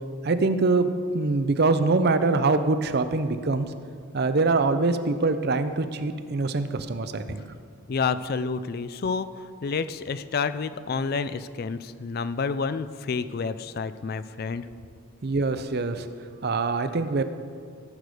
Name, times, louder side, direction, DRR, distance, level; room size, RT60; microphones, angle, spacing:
voice 1, 0.2-3.7 4.1-7.4 15.2-16.1 16.4-17.2, right 3 dB, 45° right, 10 dB, 0.5 m, -24 dB
voice 2, 7.9-14.7, left 5 dB, 45° left, 13 dB, 0.3 m, -29 dB
15.5 x 6.6 x 4.9 m, 2.2 s
head